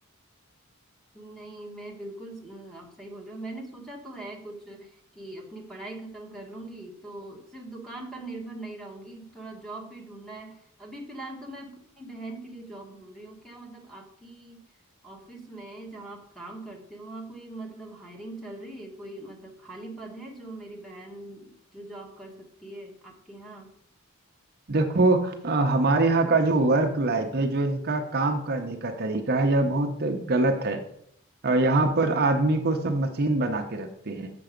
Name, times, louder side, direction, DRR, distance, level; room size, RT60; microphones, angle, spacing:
voice 1, 1.1-14.6 15.0-23.7, right 2 dB, ahead, 0 dB, 1.4 m, -42 dB
voice 2, 24.7-30.8 31.4-34.3, right 2 dB, 45° right, 4 dB, 0.7 m, -24 dB
6.8 x 6.8 x 5.0 m, 0.70 s
head